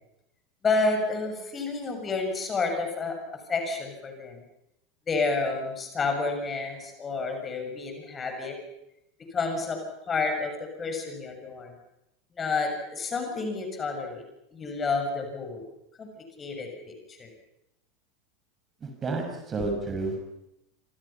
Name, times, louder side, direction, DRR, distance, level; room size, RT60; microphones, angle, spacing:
voice 1, 0.6-3.1 3.5-4.4 5.1-8.6 9.3-9.8 10.1-11.7 12.4-14.2 14.5-15.6 16.0-16.1 16.4-16.9 17.2-17.3, left 3 dB, 25° left, 4 dB, 6.9 m, -29 dB
voice 2, 18.8-20.3, right 3 dB, 25° right, 4 dB, 6.6 m, -31 dB
27.0 x 27.0 x 5.9 m, 0.84 s
figure-of-eight pair, 80°, 0 cm